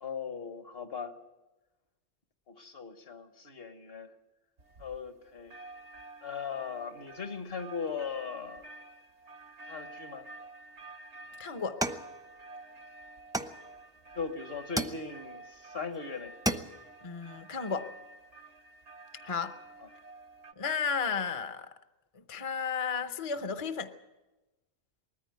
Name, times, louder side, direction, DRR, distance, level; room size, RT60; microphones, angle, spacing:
voice 1, 0.0-1.1 2.5-4.1 4.8-5.5 6.2-8.7 9.7-10.2 14.1-16.3 19.8-19.9, left 5 dB, 60° left, 8 dB, 1.5 m, -39 dB
sound 1, 4.6-5.2 5.5-20.5, right 2 dB, 80° right, 1.5 m, -50 dB
voice 2, 11.4-11.8 17.0-17.9 19.2-19.6 20.6-21.7 22.3-23.9, left 5 dB, 35° left, 9 dB, 0.7 m, -33 dB
sound 2, 11.8-12.8 13.3-14.1 14.8-15.5 15.9-16.0 16.3-17.0, right 1 dB, 5° right, 0.6 m, -34 dB
20.0 x 14.0 x 9.3 m, 1.1 s
omnidirectional pair, 1.1 m